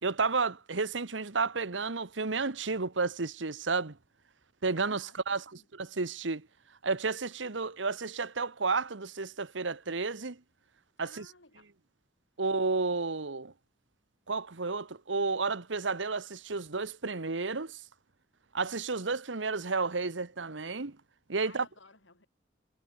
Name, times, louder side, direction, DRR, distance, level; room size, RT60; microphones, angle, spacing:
voice 1, 0.0-4.0 4.6-5.4 5.9-6.5 6.8-10.4 11.0-11.2 12.4-13.5 14.3-17.8 18.5-21.0 21.3-21.6, right 4 dB, 80° right, 1.3 m, -31 dB
voice 2, 4.7-5.7 11.0-11.7 21.4-22.3, left 3 dB, 85° left, 6.6 m, -56 dB
head